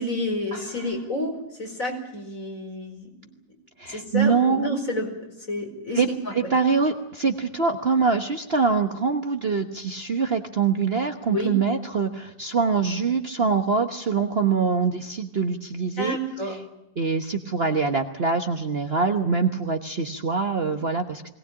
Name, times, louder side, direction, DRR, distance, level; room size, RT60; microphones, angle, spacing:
voice 1, 0.0-3.1 3.9-6.3 11.3-11.5 16.0-16.6, left 1 dB, 50° left, 3 dB, 5.1 m, -30 dB
voice 2, 3.8-4.7 5.9-16.2 16.4-16.6 17.0-21.3, right 5 dB, 40° right, 6 dB, 1.3 m, -24 dB
21.5 x 19.0 x 8.7 m, 0.84 s
omnidirectional pair, 1.9 m